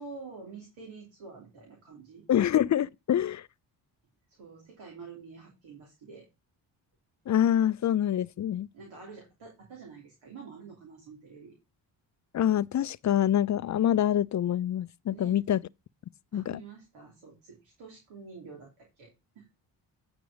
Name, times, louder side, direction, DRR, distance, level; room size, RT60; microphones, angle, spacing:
voice 1, 0.0-2.5 4.3-6.3 8.7-11.6 15.1-15.4 16.3-19.5, right 4 dB, 75° right, 3.4 m, -48 dB
voice 2, 2.3-3.5 7.3-8.7 12.3-15.6 16.3-16.6, left 10 dB, 35° left, 0.5 m, -26 dB
9.3 x 5.1 x 5.1 m
supercardioid pair, 45°, 49 cm